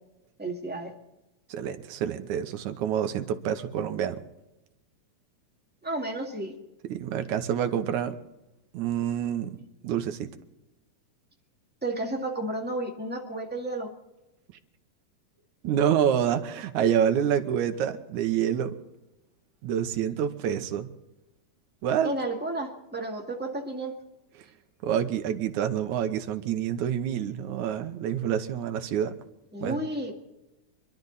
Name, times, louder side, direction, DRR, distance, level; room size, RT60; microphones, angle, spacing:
voice 1, 0.4-0.9 5.8-6.6 11.8-13.9 22.0-23.9 29.5-30.1, right 2 dB, 5° right, 0 dB, 1.3 m, -32 dB
voice 2, 1.5-4.2 6.8-8.2 8.7-10.3 15.6-18.7 19.6-20.9 21.8-22.1 24.8-29.1 29.6-29.8, right 9 dB, 75° right, 7 dB, 2.3 m, -27 dB
26.0 x 12.0 x 4.1 m, 0.97 s
omnidirectional pair, 3.7 m